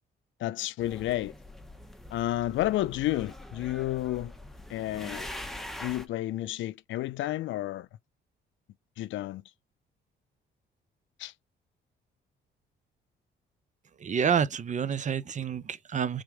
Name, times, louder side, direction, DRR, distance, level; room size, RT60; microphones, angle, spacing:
voice 1, 0.4-1.3 2.1-4.3 4.7-5.3 5.8-7.9 9.0-9.4 11.2-11.3, left 15 dB, 75° left, 0.4 m, -31 dB
sound 1, 0.8-6.1, left 1 dB, ahead, 0.8 m, -43 dB
voice 2, 14.0-16.2, right 7 dB, 40° right, 0.6 m, -28 dB
3.6 x 3.2 x 4.6 m
cardioid pair, 90°, 20 cm